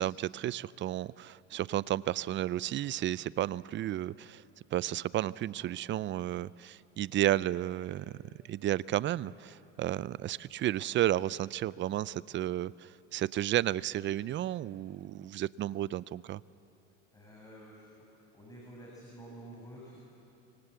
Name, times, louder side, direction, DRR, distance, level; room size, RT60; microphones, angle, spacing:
voice 1, 0.0-4.4 4.7-8.2 8.5-16.4, right 13 dB, 35° right, 20 dB, 0.5 m, -32 dB
voice 2, 17.1-20.0, right 1 dB, 10° left, -3 dB, 7.1 m, -50 dB
26.0 x 25.5 x 8.2 m, 2.9 s
supercardioid pair, 105°, 34 cm